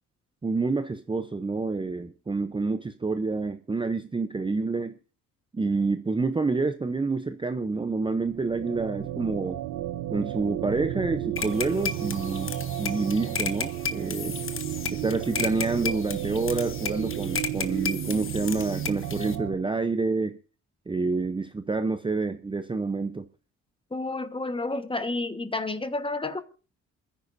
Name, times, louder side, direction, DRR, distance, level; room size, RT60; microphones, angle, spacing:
voice 1, 0.4-4.9 5.5-9.6 10.1-14.4 14.9-20.4 20.9-23.3, right 3 dB, 15° right, 0.7 m, -28 dB
sound 1, 8.1-19.5, right 13 dB, 80° right, 0.9 m, -33 dB
sound 2, 11.4-19.4, left 6 dB, 45° left, 1.3 m, -34 dB
voice 2, 23.9-26.4, left 2 dB, 15° left, 1.3 m, -30 dB
27.5 x 10.0 x 2.6 m
cardioid pair, 90°, 30 cm